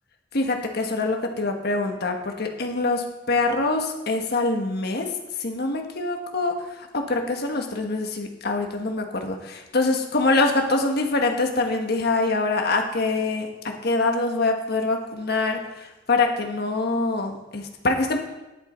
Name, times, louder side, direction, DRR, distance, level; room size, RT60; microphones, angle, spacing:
voice 1, 0.3-5.1 5.4-6.5 6.9-18.2, left 3 dB, 55° left, 3 dB, 1.3 m, -24 dB
10.5 x 8.1 x 4.4 m, 1.0 s
head